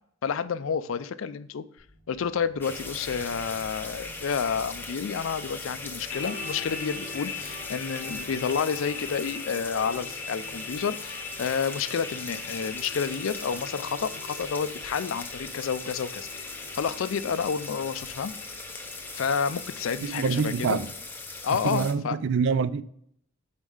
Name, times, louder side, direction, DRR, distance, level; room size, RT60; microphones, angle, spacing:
voice 1, 0.2-1.6 2.1-18.3 19.1-20.8 21.4-22.2, left 6 dB, 65° left, 0.4 m, -30 dB
sound 1, 1.8-11.6, left 1 dB, 90° right, 1.8 m, -54 dB
sound 2, 2.6-21.9, left 3 dB, 10° left, 0.6 m, -39 dB
sound 3, 6.1-20.6, left 4 dB, 45° left, 0.9 m, -41 dB
voice 2, 20.0-20.9 21.6-22.8, right 5 dB, 60° right, 0.4 m, -26 dB
5.4 x 4.4 x 4.8 m
head